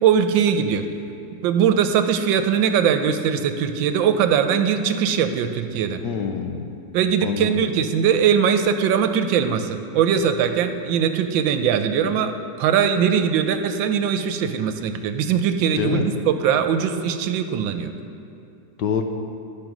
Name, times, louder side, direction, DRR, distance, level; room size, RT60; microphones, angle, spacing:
voice 1, 0.0-0.9 1.4-6.0 6.9-17.9, right 7 dB, 85° right, 8 dB, 1.3 m, -21 dB
voice 2, 6.0-6.6 7.2-7.6 15.7-16.0 18.8-19.0, left 7 dB, 70° left, 5 dB, 1.2 m, -25 dB
11.0 x 5.2 x 6.0 m, 2.7 s
omnidirectional pair, 2.1 m